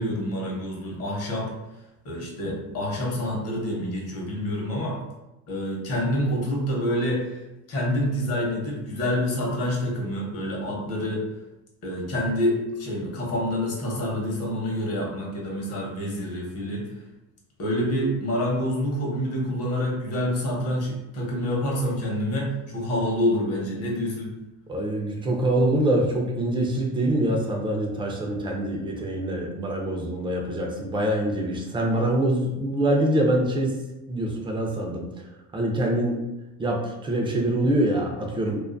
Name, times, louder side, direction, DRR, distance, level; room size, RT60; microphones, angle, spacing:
voice 1, 0.0-1.5 2.0-5.0 5.5-7.3 7.7-11.2 11.8-16.8 17.6-24.3, left 1 dB, 45° left, -2 dB, 0.8 m, -27 dB
voice 2, 24.7-33.8 34.1-35.0 35.5-36.2 36.6-38.6, right 1 dB, 15° right, 0 dB, 0.3 m, -24 dB
2.4 x 2.3 x 2.4 m, 0.97 s
cardioid pair, 130°, 34 cm